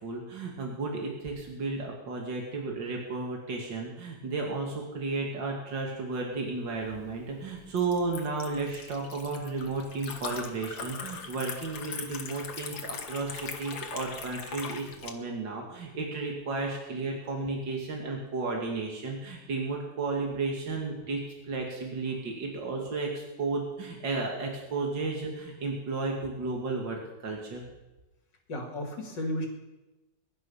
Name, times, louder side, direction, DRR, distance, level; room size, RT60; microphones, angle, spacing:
voice 1, 0.0-27.7, right 3 dB, 75° right, 0 dB, 2.9 m, -33 dB
Liquid, 6.7-15.1, left 5 dB, 90° left, 2.2 m, -41 dB
voice 2, 28.5-29.5, left 1 dB, 70° left, 2 dB, 3.3 m, -33 dB
22.5 x 11.0 x 5.6 m, 1.1 s
omnidirectional pair, 2.0 m